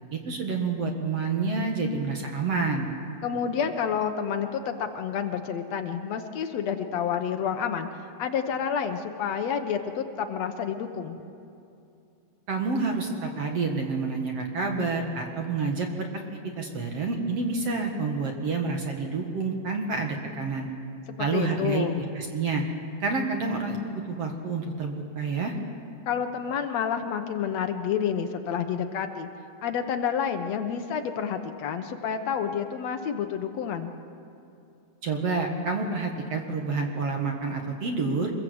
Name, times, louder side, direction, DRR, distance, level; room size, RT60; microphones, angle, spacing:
voice 1, 0.1-2.9 12.5-16.2 16.6-20.7 21.2-21.9 22.1-22.6 23.0-25.5 35.0-38.3, right 4 dB, 50° right, 2 dB, 2.3 m, -28 dB
voice 2, 3.2-11.2 21.2-22.0 26.1-29.3 29.6-33.9, left 7 dB, 70° left, 6 dB, 1.6 m, -29 dB
25.5 x 22.0 x 8.0 m, 2.6 s
omnidirectional pair, 4.5 m